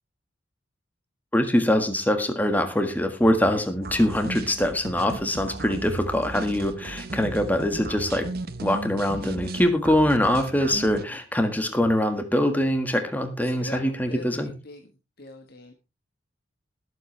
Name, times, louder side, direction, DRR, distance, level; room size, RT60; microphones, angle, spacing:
voice 1, 1.3-8.3 8.6-14.5, left 1 dB, 10° left, 6 dB, 1.6 m, -23 dB
sound 1, 3.8-11.1, right 2 dB, 50° right, 1.0 m, -35 dB
voice 2, 13.5-14.8 15.2-15.7, left 2 dB, 55° left, 5 dB, 1.4 m, -42 dB
20.5 x 7.9 x 3.3 m, 0.28 s
head